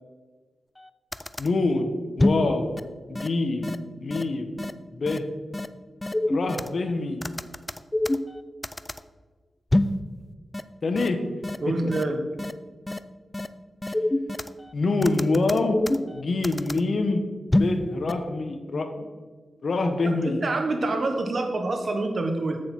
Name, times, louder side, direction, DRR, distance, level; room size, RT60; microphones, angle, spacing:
sound 1, 0.8-0.9 1.1-1.5 2.2-2.5 2.8-2.9 3.1-3.3 3.6-3.8 4.1-4.2 4.6-4.7 5.1-5.2 5.5-5.7 6.0-6.7 7.2-8.4 8.6-9.0 9.7-10.0 10.5-10.6 11.0-11.1 11.4-11.6 11.9-12.0 12.4-12.5 12.9-13.0 13.3-13.5 13.8-14.5 15.0-16.1 16.4-16.8 17.5-17.8 18.1-18.2, left 1 dB, 20° left, 0.4 m, -25 dB
voice 1, 1.4-2.8 3.1-4.5 4.9-5.2 6.3-7.2 10.8-11.2 14.7-15.8 16.1-17.2 17.5-19.1 19.6-20.4, left 3 dB, 65° left, 7 dB, 1.0 m, -25 dB
voice 2, 11.6-12.2 20.0-22.6, right 2 dB, 60° right, 5 dB, 1.3 m, -27 dB
8.0 x 7.6 x 4.4 m, 1.4 s
cardioid pair, 55°, 0 cm